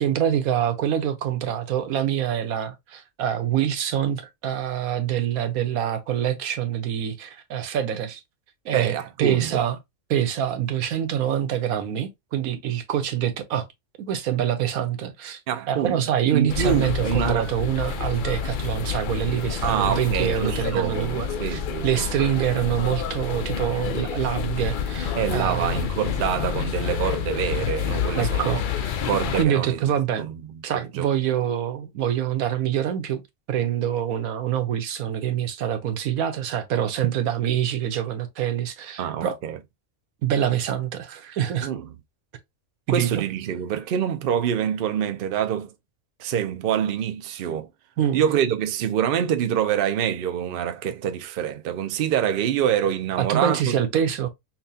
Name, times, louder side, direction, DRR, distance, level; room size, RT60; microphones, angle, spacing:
voice 1, 0.0-8.2 8.6-9.8 10.1-13.7 14.0-15.4 15.7-25.9 28.2-29.0 29.3-30.3 30.6-33.2 33.5-39.4 40.2-41.7 42.9-43.2 48.0-48.3 53.2-54.3, right 10 dB, 85° right, 1.2 m, -25 dB
voice 2, 8.7-9.6 15.5-16.0 16.3-17.5 19.6-21.9 25.1-28.6 29.0-29.8 30.2-30.4 31.0-31.1 39.0-39.6 41.6-41.9 42.9-45.7 46.2-47.7 48.1-53.8, right 9 dB, 55° right, 0.6 m, -26 dB
sound 1, 16.5-29.4, left 7 dB, 75° left, 0.4 m, -28 dB
5.7 x 2.2 x 2.7 m
omnidirectional pair, 1.4 m